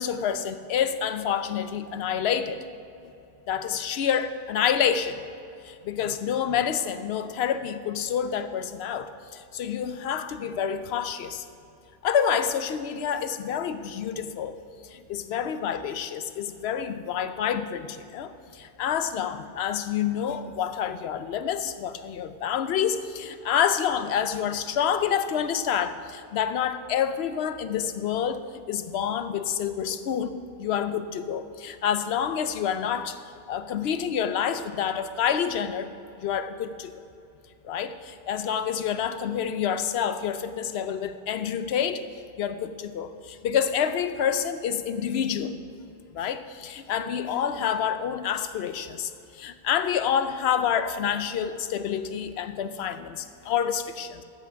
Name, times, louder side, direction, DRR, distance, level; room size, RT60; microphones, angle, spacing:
voice 1, 0.0-2.6 3.5-5.2 5.6-11.5 12.0-14.6 14.8-33.2 33.5-35.9 36.2-37.0 37.6-45.5 46.1-54.2, left 8 dB, 75° left, 11 dB, 0.8 m, -28 dB
14.0 x 5.8 x 5.1 m, 2.7 s
omnidirectional pair, 1.1 m